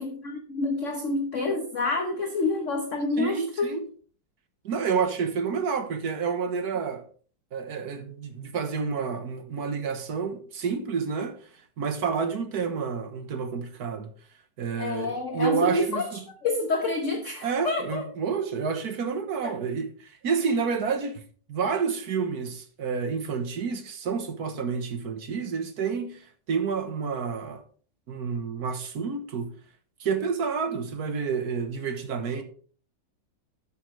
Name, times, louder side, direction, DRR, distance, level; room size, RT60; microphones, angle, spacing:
voice 1, 0.0-3.8 14.8-18.0 19.4-19.6, left 3 dB, 45° left, 1.3 m, -28 dB
voice 2, 3.2-3.8 4.6-7.0 7.5-11.5 11.8-14.1 14.6-16.3 17.4-21.2 21.5-27.6 28.1-29.6 30.0-32.4, right 5 dB, 60° right, 1.6 m, -29 dB
11.5 x 8.5 x 3.3 m
omnidirectional pair, 2.0 m